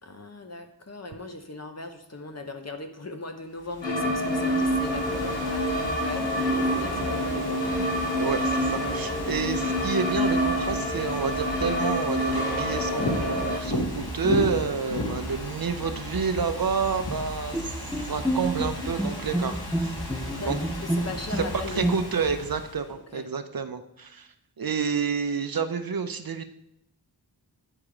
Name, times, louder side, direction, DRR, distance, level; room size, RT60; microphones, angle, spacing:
voice 1, 0.0-7.9 20.2-22.0 23.1-23.3, left 2 dB, 35° left, 5 dB, 1.0 m, -38 dB
Ocean / Fireworks, 3.6-22.9, left 1 dB, 60° left, 1.9 m, -35 dB
sound 1, 3.8-13.6, equal, 75° left, 1.3 m, -27 dB
voice 2, 8.2-17.8 18.1-19.9 20.4-20.6 21.3-21.4 21.7-24.3 24.6-26.4, right 5 dB, 55° right, 9 dB, 0.7 m, -29 dB
Bowed string instrument, 17.5-22.4, right 1 dB, ahead, 0.5 m, -30 dB
9.7 x 3.7 x 4.8 m, 0.76 s
cardioid pair, 50°, 43 cm